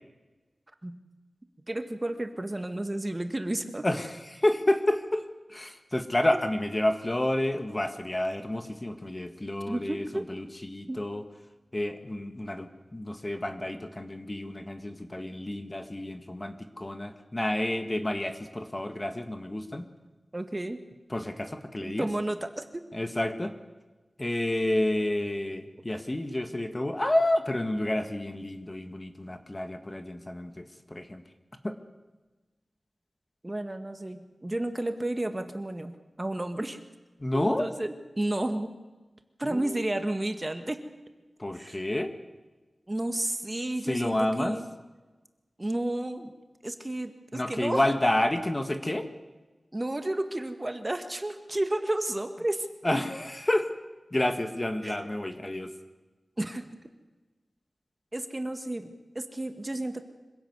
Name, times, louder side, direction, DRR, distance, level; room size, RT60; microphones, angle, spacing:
voice 1, 1.7-3.9 9.7-10.3 10.9-11.0 20.3-20.8 21.8-22.8 33.4-36.8 37.3-38.7 39.4-40.9 41.5-41.8 42.9-44.7 45.6-46.3 46.6-47.8 49.7-52.7 54.8-55.0 56.4-56.7 58.1-60.0, right 1 dB, 25° right, 7 dB, 1.7 m, -32 dB
voice 2, 3.8-11.2 11.7-19.9 21.1-22.1 22.9-23.5 24.2-31.2 31.6-31.8 37.2-37.7 39.4-39.8 41.4-42.1 43.9-44.6 47.3-49.1 52.8-53.7 54.1-55.7, left 1 dB, 25° left, 7 dB, 1.8 m, -29 dB
25.5 x 16.5 x 8.1 m, 1.2 s
wide cardioid pair, 95°, 0 cm